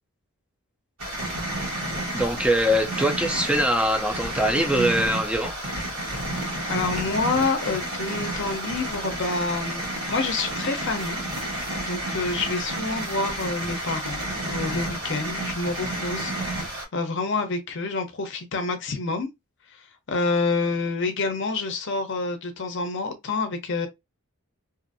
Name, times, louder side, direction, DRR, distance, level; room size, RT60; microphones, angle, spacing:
sound 1, 1.0-16.8, right 1 dB, 70° right, 1.4 m, -31 dB
voice 1, 2.1-5.5, equal, 5° right, 0.4 m, -23 dB
voice 2, 6.4-9.8 10.1-11.2 11.5-19.3 19.7-23.9, left 3 dB, 55° left, 0.6 m, -28 dB
2.6 x 2.5 x 2.5 m
head